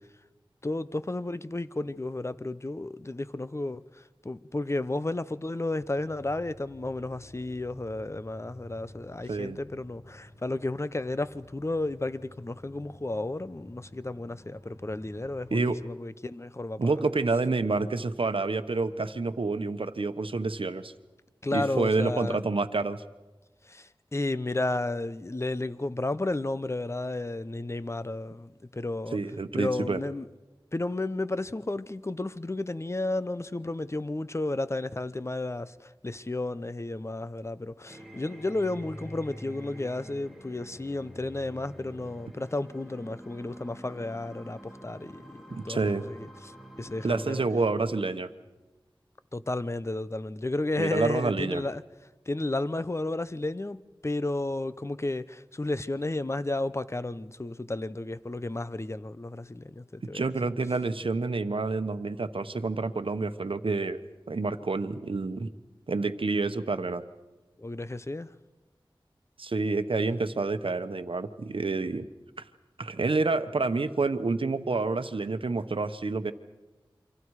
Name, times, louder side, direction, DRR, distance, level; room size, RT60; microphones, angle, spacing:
voice 1, 0.6-16.8 21.4-22.4 23.6-29.2 29.5-30.3 30.7-46.5 46.8-47.4 49.3-51.8 52.3-60.3 67.6-68.3, left 2 dB, 30° left, 0.8 m, -32 dB
sound 1, 5.9-15.6, left 1 dB, 45° left, 3.0 m, -52 dB
voice 2, 16.8-20.9 21.5-23.0 29.1-30.0 45.5-46.0 47.0-48.3 50.8-51.6 60.1-64.0 64.3-65.5 65.9-67.0 69.4-72.1 72.8-76.3, right 3 dB, 75° right, 1.1 m, -28 dB
sound 2, 37.9-47.5, equal, ahead, 3.1 m, -47 dB
28.5 x 25.0 x 4.8 m
wide cardioid pair, 50°, 9 cm